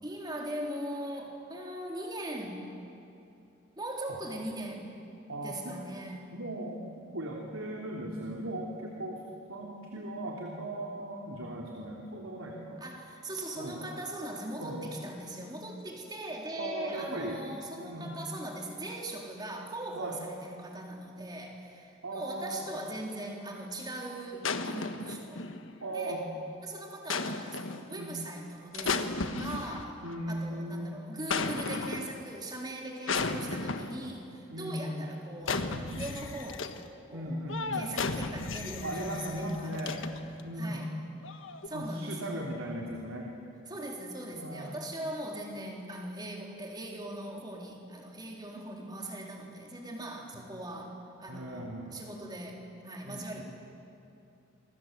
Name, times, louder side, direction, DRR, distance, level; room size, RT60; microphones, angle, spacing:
voice 1, 0.0-2.7 3.8-5.0 5.4-6.3 12.8-25.4 25.9-26.2 26.6-30.0 30.3-36.8 37.1-37.4 37.7-40.1 40.6-40.9 41.6-42.5 43.7-53.4, right 1 dB, 20° right, -1 dB, 3.9 m, -40 dB
voice 2, 5.3-5.7 6.3-9.2 9.5-12.8 13.6-13.8 14.5-14.8 16.6-17.4 17.8-18.1 19.9-20.2 22.0-22.7 25.8-26.2 27.9-28.1 30.0-31.0 34.5-35.1 37.1-37.9 38.8-40.0 40.4-40.9 41.7-43.3 44.3-44.9 50.3-50.4 51.3-52.0 53.0-53.4, right 1 dB, 80° right, -1 dB, 3.1 m, -38 dB
sound 1, 24.4-25.9 27.1-27.9 28.7-30.1 31.3-32.3 33.1-34.1 35.4-36.9 37.5-40.4 41.2-41.7, left 4 dB, 70° left, 1.4 m, -34 dB
28.0 x 25.0 x 7.8 m, 2.7 s
head